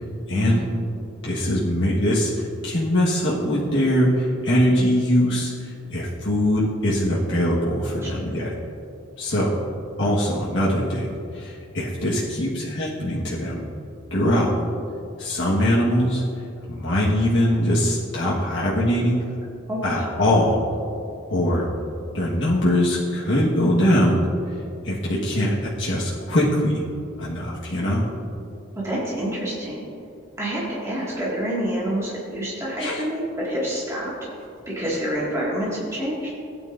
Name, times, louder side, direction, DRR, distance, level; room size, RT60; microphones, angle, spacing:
voice 1, 0.3-0.6 1.2-8.5 9.2-9.5 10.0-13.7 14.1-14.5 15.2-16.2 16.7-19.2 19.8-20.6 21.3-21.7 22.1-24.2 24.8-26.8 27.2-28.1 32.8-33.0, equal, 60° left, -7 dB, 1.5 m, -22 dB
voice 2, 19.7-20.1 28.8-29.8 30.4-34.1 34.7-36.3, right 1 dB, 15° right, -7 dB, 2.1 m, -27 dB
16.5 x 9.3 x 2.6 m, 2.4 s
head